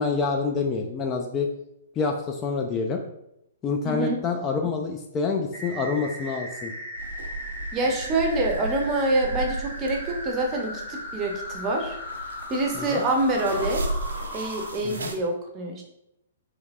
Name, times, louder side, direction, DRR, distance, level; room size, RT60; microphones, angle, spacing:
voice 1, 0.0-1.5 2.0-3.0 3.6-6.7 12.7-13.0 14.8-15.1, left 4 dB, 20° left, 2 dB, 0.3 m, -27 dB
voice 2, 3.8-4.2 7.7-12.0 12.5-13.9 14.3-15.8, right 2 dB, 25° right, 2 dB, 0.6 m, -26 dB
sound 1, 5.5-14.7, equal, 45° left, 1.5 m, -37 dB
sound 2, 7.0-15.2, right 2 dB, 70° right, 0.5 m, -35 dB
3.3 x 3.1 x 2.3 m, 0.81 s
figure-of-eight pair, 115°, 0 cm